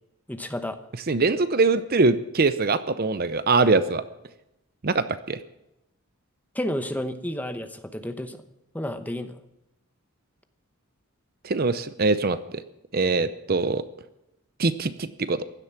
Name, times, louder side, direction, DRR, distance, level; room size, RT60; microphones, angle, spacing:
voice 1, 0.3-0.8 6.5-8.4 8.7-9.4, left 1 dB, 5° left, 8 dB, 0.9 m, -31 dB
voice 2, 1.1-4.0 4.8-5.4 11.4-12.6 12.9-13.8 14.6-15.4, right 3 dB, 45° right, 13 dB, 0.7 m, -23 dB
16.0 x 12.0 x 5.9 m, 0.90 s
head